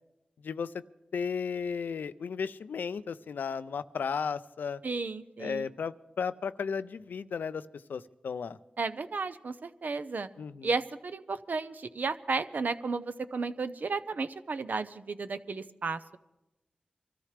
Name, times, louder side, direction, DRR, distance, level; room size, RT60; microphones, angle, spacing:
voice 1, 1.1-4.8 5.4-7.6 7.9-8.6 10.4-10.7, left 6 dB, 90° left, 14 dB, 0.4 m, -34 dB
voice 2, 4.8-5.7 8.8-10.3 10.6-16.2, right 4 dB, 65° right, 11 dB, 0.7 m, -33 dB
24.5 x 13.5 x 3.3 m, 0.95 s
cardioid pair, 40°, 3 cm